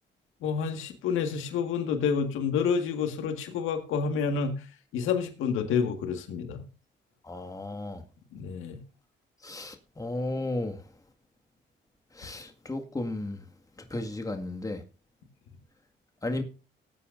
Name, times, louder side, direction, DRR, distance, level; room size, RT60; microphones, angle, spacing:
voice 1, 0.4-4.6 4.9-6.6 8.3-8.8, left 6 dB, 90° left, 1.8 m, -29 dB
voice 2, 7.3-8.0 9.4-10.8 12.2-13.4 13.9-14.8 16.2-16.4, left 2 dB, 15° left, 1.9 m, -34 dB
19.0 x 8.5 x 2.6 m
cardioid pair, 90°, 20 cm